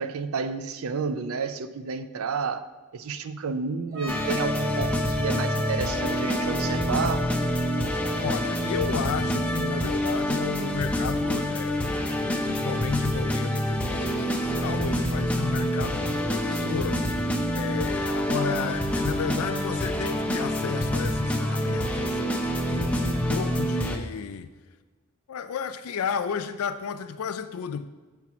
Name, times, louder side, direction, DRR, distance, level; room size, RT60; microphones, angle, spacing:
voice 1, 0.0-7.3, right 5 dB, 65° right, 0.5 m, -31 dB
sound 1, 3.9-11.4, equal, 45° right, 2.0 m, -38 dB
sound 2, 4.1-24.0, equal, 5° left, 0.6 m, -27 dB
voice 2, 8.2-24.5 25.3-27.9, left 6 dB, 70° left, 0.4 m, -33 dB
6.9 x 4.5 x 6.0 m
head